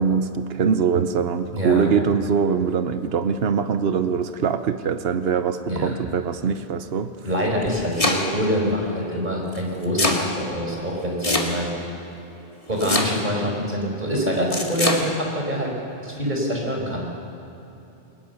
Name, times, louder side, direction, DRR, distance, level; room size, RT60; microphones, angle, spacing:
voice 1, 0.0-7.1, right 6 dB, 70° right, 10 dB, 1.1 m, -23 dB
voice 2, 1.5-1.9 5.7-5.9 7.2-11.8 12.7-15.7 16.0-17.1, equal, 45° right, -1 dB, 5.0 m, -25 dB
Domestic sounds home sounds, 7.5-8.5 9.5-10.3 11.2-11.8 12.8-13.4 14.5-15.0, left 2 dB, 35° left, 2.1 m, -23 dB
22.0 x 20.0 x 7.0 m, 2.9 s
omnidirectional pair, 1.1 m